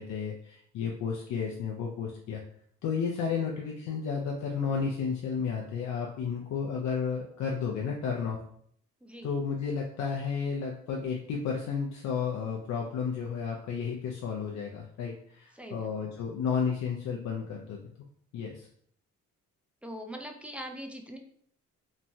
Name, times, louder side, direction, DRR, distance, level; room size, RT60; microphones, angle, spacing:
voice 1, 0.0-2.4 2.8-8.4 9.2-17.8 18.3-18.7, left 6 dB, 65° left, -1 dB, 0.5 m, -32 dB
voice 2, 9.0-9.4 15.5-16.1 19.8-21.2, equal, 5° right, 3 dB, 0.3 m, -42 dB
3.0 x 2.2 x 2.6 m, 0.64 s
cardioid pair, 90°, 30 cm